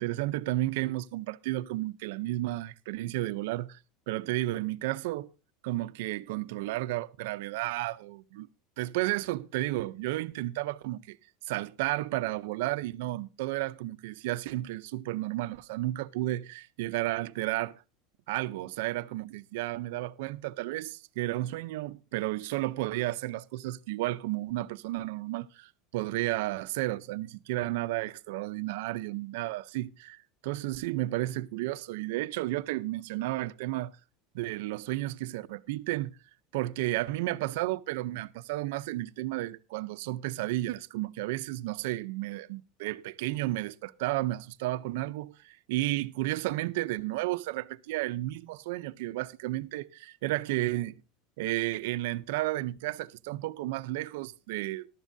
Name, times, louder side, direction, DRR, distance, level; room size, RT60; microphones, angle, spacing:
voice 1, 0.0-3.8 4.1-5.3 5.6-8.5 8.8-11.2 11.5-17.8 18.3-33.9 34.3-36.1 36.5-51.0 51.4-54.9, right 17 dB, 70° right, 0.5 m, -32 dB
14.5 x 12.0 x 2.7 m
supercardioid pair, 170°, 0 cm